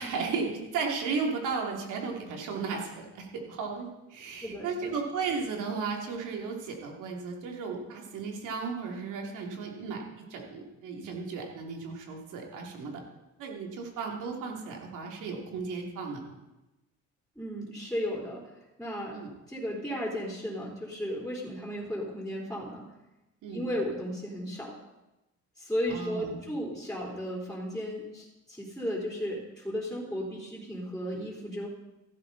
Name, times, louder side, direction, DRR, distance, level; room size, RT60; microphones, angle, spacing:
voice 1, 0.0-13.0 13.4-16.2 19.1-19.3 23.4-23.7 25.9-26.4, right 5 dB, 90° right, 1 dB, 2.9 m, -35 dB
voice 2, 4.4-5.0 17.4-18.4 18.8-19.2 19.5-22.8 23.5-24.7 25.6-31.7, equal, 5° left, -4 dB, 4.1 m, -34 dB
15.0 x 13.0 x 4.1 m, 0.98 s
cardioid pair, 90°, 30 cm